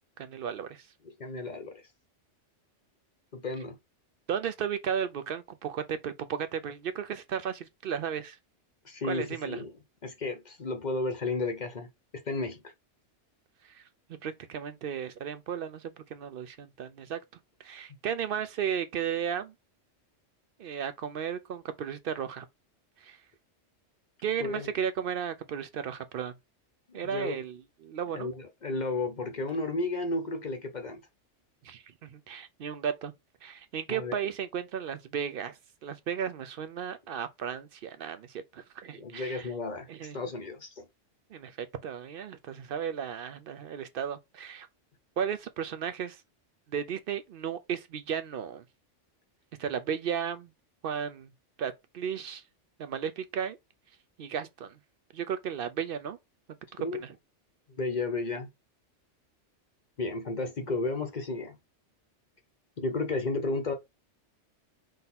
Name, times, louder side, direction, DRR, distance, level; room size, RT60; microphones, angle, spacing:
voice 1, 0.2-0.9 4.3-8.4 9.0-9.6 13.6-13.8 14.2-17.2 17.6-19.5 20.6-22.5 23.0-23.2 24.2-26.3 26.9-28.3 31.6-33.1 33.4-39.5 39.9-40.2 41.3-44.7 45.2-46.2 46.7-48.6 49.6-50.5 50.8-51.3 51.6-52.4 52.8-53.6 54.2-54.8 55.1-56.2 56.7-57.2, right 8 dB, 60° right, 0.6 m, -34 dB
voice 2, 1.2-1.8 3.3-3.8 8.8-9.7 10.0-11.9 12.3-12.7 24.4-24.7 26.9-27.4 28.1-31.0 33.9-34.2 39.0-40.9 56.8-57.0 57.7-58.5 60.0-61.6 62.8-63.7, left 3 dB, 45° left, 0.7 m, -33 dB
3.8 x 2.7 x 4.1 m
omnidirectional pair, 1.2 m